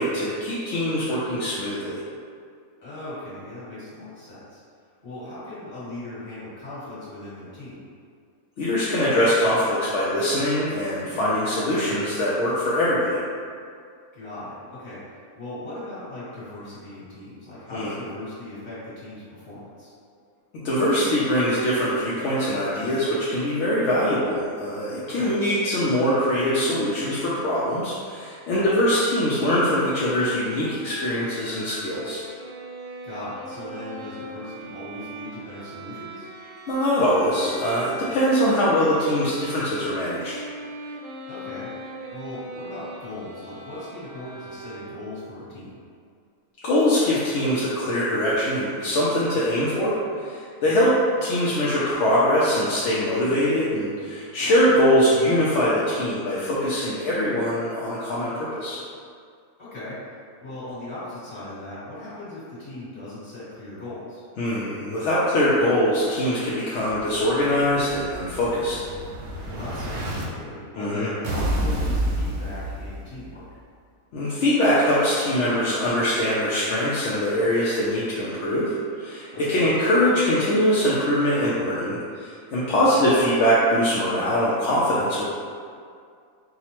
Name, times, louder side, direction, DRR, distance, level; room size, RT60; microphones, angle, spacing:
voice 1, 0.0-2.0 8.6-13.2 17.7-17.9 20.5-32.2 36.7-40.3 46.6-50.9 51.2-58.8 64.4-68.8 70.8-71.1 74.1-85.2, equal, 65° left, -8 dB, 0.8 m, -22 dB
voice 2, 2.8-4.6 5.0-7.8 14.1-19.9 25.0-25.4 28.5-28.7 33.0-36.3 41.3-41.7 42.1-45.8 50.6-50.8 54.4-54.5 59.6-60.0 60.4-64.2 69.5-73.4 79.3-79.7 82.7-83.0, left 2 dB, 40° left, -11 dB, 1.6 m, -38 dB
sound 1, 30.4-45.3, right 2 dB, 60° right, 0.6 m, -40 dB
Explosion, 66.9-70.2 71.2-73.3, right 1 dB, 85° right, 1.1 m, -29 dB
4.8 x 2.1 x 2.9 m, 2.2 s
omnidirectional pair, 1.5 m